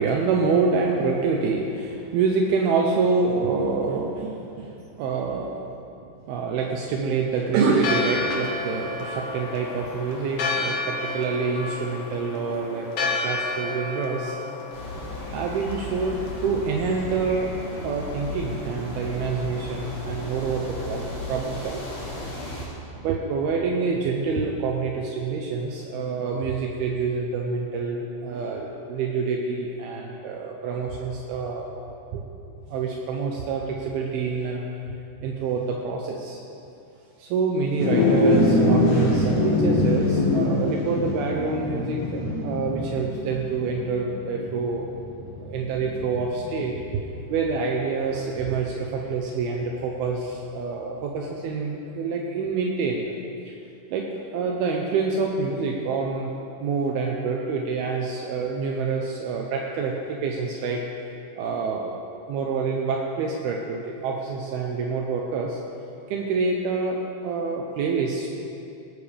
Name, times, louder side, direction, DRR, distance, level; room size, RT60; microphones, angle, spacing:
voice 1, 0.0-5.6 6.3-14.4 15.3-17.5 17.8-21.9 23.0-31.7 32.1-32.2 32.7-35.0 35.2-36.4 37.2-44.9 45.4-47.0 47.3-53.0 53.5-53.6 53.9-56.3 56.6-60.8 61.4-62.0 62.3-65.6 66.1-68.3, right 4 dB, 80° right, 0 dB, 2.2 m, -27 dB
Church bell, 7.7-16.6, left 3 dB, 85° left, 1.6 m, -31 dB
sound 1, 14.7-22.6, left 2 dB, 30° left, 4.4 m, -35 dB
sound 2, 37.7-47.3, left 2 dB, 70° left, 3.9 m, -24 dB
18.0 x 13.0 x 3.4 m, 2.7 s
omnidirectional pair, 5.5 m